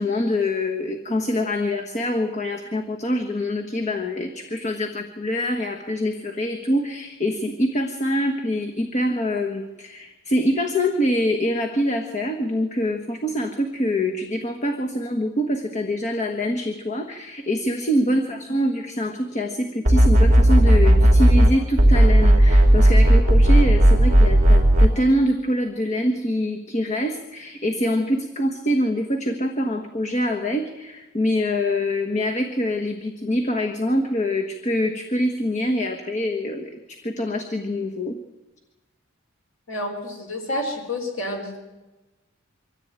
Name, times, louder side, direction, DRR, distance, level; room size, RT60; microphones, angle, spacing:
voice 1, 0.0-38.2, left 1 dB, 35° left, 3 dB, 1.3 m, -25 dB
sound 1, 19.8-21.5 21.8-24.9, right 1 dB, 40° right, 3.0 m, -14 dB
voice 2, 39.7-41.6, left 1 dB, 65° left, 2 dB, 4.0 m, -29 dB
24.5 x 14.0 x 9.0 m, 1.1 s
head